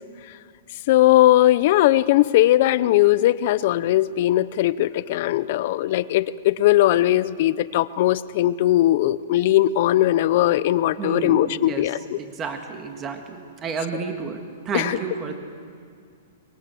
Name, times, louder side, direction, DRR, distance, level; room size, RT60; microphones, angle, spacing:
voice 1, 0.9-12.2 14.7-15.0, left 14 dB, 35° left, 17 dB, 0.6 m, -19 dB
voice 2, 11.0-15.3, right 5 dB, 15° right, 5 dB, 1.7 m, -31 dB
23.0 x 22.5 x 7.8 m, 2.2 s
hypercardioid pair, 175°, 0 cm